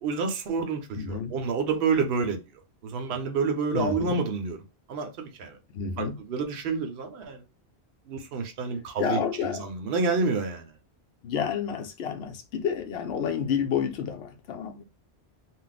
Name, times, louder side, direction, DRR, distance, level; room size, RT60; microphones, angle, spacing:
voice 1, 0.0-2.4 2.8-4.6 4.9-5.6 6.0-7.4 8.1-10.7, right 4 dB, 70° right, 0.8 m, -28 dB
voice 2, 1.0-1.3 3.7-4.2 5.7-6.2 9.0-9.7 11.2-14.8, left 7 dB, 75° left, 0.8 m, -30 dB
2.4 x 2.0 x 3.8 m
omnidirectional pair, 1.1 m